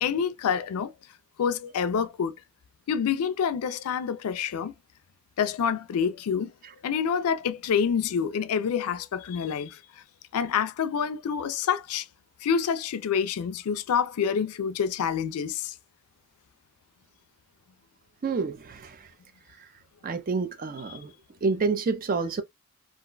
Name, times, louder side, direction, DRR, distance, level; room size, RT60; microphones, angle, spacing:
voice 1, 0.0-0.9 1.4-2.3 2.9-4.7 5.4-6.5 6.8-9.8 10.3-12.1 12.4-15.7 20.9-21.0, left 7 dB, 80° left, 0.4 m, -27 dB
voice 2, 18.2-19.1 20.0-21.1 21.4-22.4, right 4 dB, 40° right, 0.4 m, -28 dB
2.4 x 2.2 x 3.7 m
head